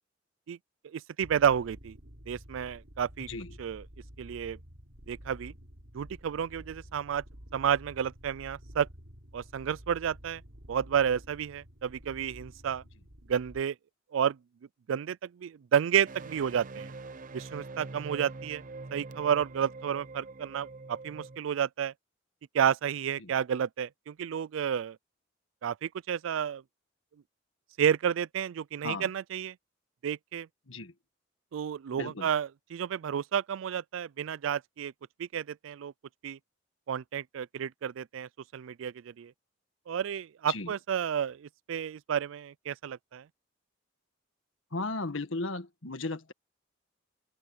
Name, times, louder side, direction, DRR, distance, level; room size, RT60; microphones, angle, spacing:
voice 1, 0.9-2.0 2.3-3.3 3.6-3.8 4.2-4.6 5.1-5.5 5.9-7.2 7.5-8.9 9.3-10.4 10.7-12.8 13.3-13.7 14.1-14.4 14.9-16.9 17.3-18.6 18.9-21.9 22.5-25.0 25.6-26.6 27.8-29.6 30.0-30.5 31.5-34.9 35.2-35.9 36.2-36.4 36.9-39.3 39.9-43.2, right 8 dB, 85° right, 0.4 m, -31 dB
sound 1, 1.2-13.6, equal, 70° right, 4.8 m, -50 dB
voice 2, 3.3-3.6 23.2-23.3 28.8-29.1 30.7-30.9 31.9-32.3 40.5-40.7 44.7-46.3, left 3 dB, 85° left, 1.6 m, -36 dB
sound 2, 16.1-21.4, right 3 dB, 45° right, 0.7 m, -44 dB
open air
head